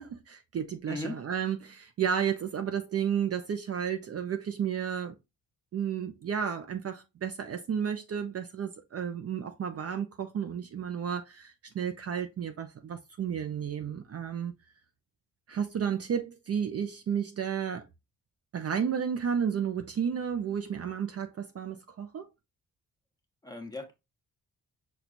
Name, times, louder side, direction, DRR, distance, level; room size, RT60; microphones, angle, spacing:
voice 1, 0.0-5.1 5.7-14.5 15.5-17.8 18.5-22.3, right 8 dB, 45° right, 0.5 m, -32 dB
voice 2, 0.9-1.2 23.4-23.9, left 2 dB, 10° left, 1.1 m, -37 dB
5.9 x 2.3 x 3.8 m
wide cardioid pair, 150°, 35 cm